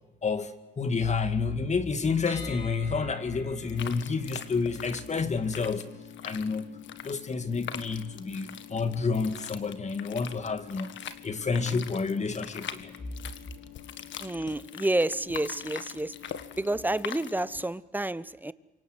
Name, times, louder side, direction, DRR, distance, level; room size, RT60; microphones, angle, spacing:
voice 1, 0.2-5.8 6.2-6.7 7.0-12.9, left 4 dB, 35° left, 9 dB, 2.3 m, -29 dB
sound 1, 2.3-14.2, left 5 dB, 90° left, 4.3 m, -51 dB
sound 2, 3.6-17.7, left 10 dB, 70° left, 1.6 m, -43 dB
voice 2, 14.2-16.1 16.6-18.5, right 1 dB, 10° right, 16 dB, 0.9 m, -29 dB
28.5 x 24.5 x 8.0 m, 0.99 s
cardioid pair, 90°, 20 cm